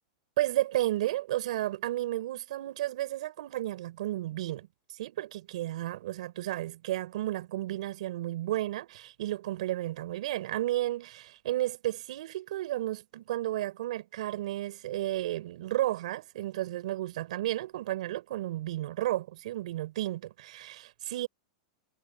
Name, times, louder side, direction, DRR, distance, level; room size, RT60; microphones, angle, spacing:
voice 1, 0.4-21.3, right 15 dB, 70° right, 4.2 m, -33 dB
supercardioid pair, 140°, 4 cm